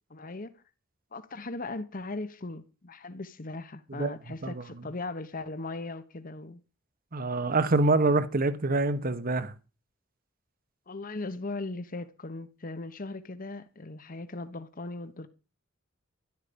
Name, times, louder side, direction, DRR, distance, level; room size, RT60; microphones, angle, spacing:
voice 1, 0.1-0.5 1.1-6.6 10.9-15.3, left 2 dB, 40° left, 1.1 m, -38 dB
voice 2, 7.1-9.5, right 2 dB, 45° right, 1.2 m, -26 dB
13.0 x 11.5 x 5.3 m
head